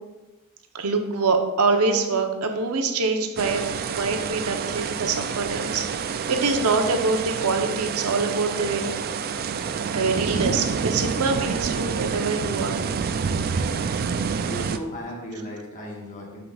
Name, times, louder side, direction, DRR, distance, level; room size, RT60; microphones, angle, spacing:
voice 1, 0.7-8.9 9.9-12.8, right 4 dB, 90° right, 5 dB, 0.8 m, -25 dB
sound 1, 3.4-14.8, right 6 dB, 45° right, 0.3 m, -28 dB
voice 2, 14.4-16.4, equal, 35° left, -2 dB, 1.4 m, -35 dB
11.5 x 4.9 x 2.4 m, 1.1 s
head